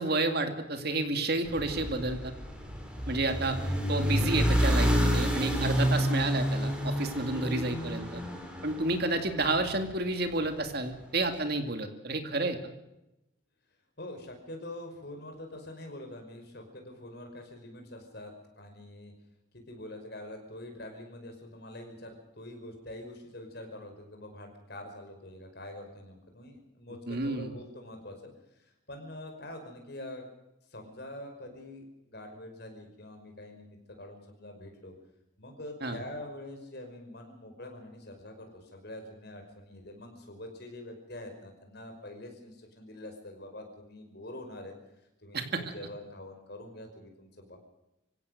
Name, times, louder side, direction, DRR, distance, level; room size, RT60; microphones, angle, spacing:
voice 1, 0.0-2.3 3.1-3.6 3.9-8.2 8.6-12.6 27.1-27.5 35.8-36.0 45.3-45.6, right 2 dB, 50° right, 7 dB, 2.3 m, -30 dB
sound 1, 1.4-9.8, equal, 5° right, 3.9 m, -29 dB
voice 2, 14.0-19.1 19.5-28.3 28.6-30.3 30.7-34.9 35.4-44.7 45.2-47.6, left 1 dB, 50° left, 4 dB, 5.4 m, -45 dB
26.0 x 16.5 x 6.6 m, 0.90 s
head